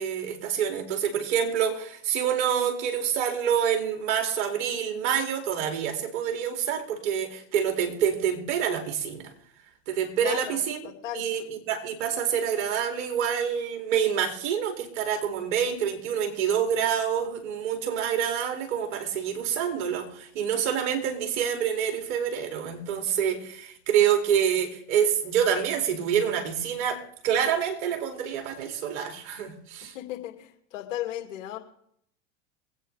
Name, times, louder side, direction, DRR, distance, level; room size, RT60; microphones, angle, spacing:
voice 1, 0.0-9.3 9.9-10.8 11.1-29.9, right 8 dB, 60° right, 2.8 m, -27 dB
voice 2, 10.2-10.6 10.8-11.3 29.8-31.6, left 13 dB, 70° left, 2.4 m, -35 dB
24.0 x 9.0 x 3.3 m
hypercardioid pair, 100°, 39 cm